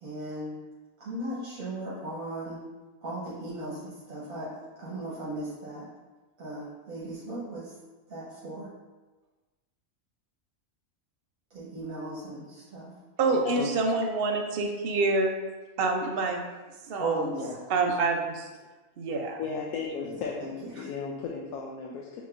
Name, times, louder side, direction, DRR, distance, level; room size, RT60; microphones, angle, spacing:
voice 1, 0.0-0.6 1.0-2.6 3.0-4.5 4.8-5.9 6.4-7.8 8.1-8.7 11.5-12.9 13.3-13.4 17.0-17.6 19.9-20.9, right 2 dB, 75° right, -8 dB, 1.5 m, -36 dB
voice 2, 13.2-15.3 15.8-16.4 16.9-17.2 17.7-18.5 19.0-19.4, right 3 dB, 55° right, 2 dB, 0.7 m, -26 dB
voice 3, 19.4-22.2, left 5 dB, 85° left, -1 dB, 1.0 m, -35 dB
6.5 x 3.0 x 2.5 m, 1.2 s
omnidirectional pair, 1.5 m